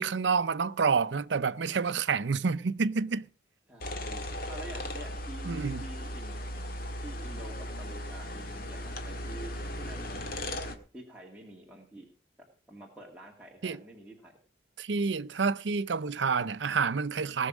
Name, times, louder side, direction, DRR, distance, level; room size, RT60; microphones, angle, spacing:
voice 1, 0.0-3.3 5.4-5.9 13.6-13.8 14.8-17.5, right 5 dB, 75° right, 0.6 m, -28 dB
voice 2, 3.7-6.4 7.0-10.3 10.6-12.1 12.7-14.4, right 1 dB, 5° right, 2.0 m, -48 dB
sound 1, 3.8-10.8, left 1 dB, 50° left, 1.6 m, -37 dB
19.0 x 6.5 x 6.0 m
head